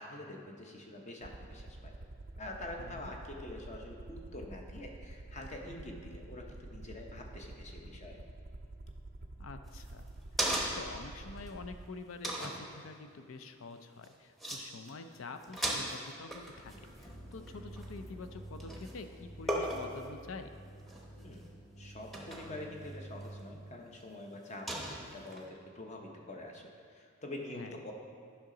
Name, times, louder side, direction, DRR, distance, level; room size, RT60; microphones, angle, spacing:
voice 1, 0.0-1.9 2.4-8.2 21.2-21.5 21.8-27.9, left 1 dB, 35° left, 1 dB, 0.8 m, -46 dB
Aircraft, 1.2-11.9, right 2 dB, 45° right, 0.5 m, -48 dB
voice 2, 2.8-3.1 9.4-10.1 10.7-16.7 17.0-20.5 27.6-27.7, left 3 dB, 70° left, 8 dB, 0.5 m, -47 dB
sound 1, 9.7-11.0 11.5-11.6 12.2-12.6 14.0-14.1 14.4-14.6 14.9-15.2 15.4-18.3 18.6-19.0 19.5-20.0 20.8-21.3 22.1-22.6 23.2-23.3 24.7-25.4, right 1 dB, ahead, 0.8 m, -36 dB
sound 2, 16.3-24.1, right 1 dB, 20° left, 1.5 m, -50 dB
10.5 x 5.7 x 3.8 m, 2.2 s
head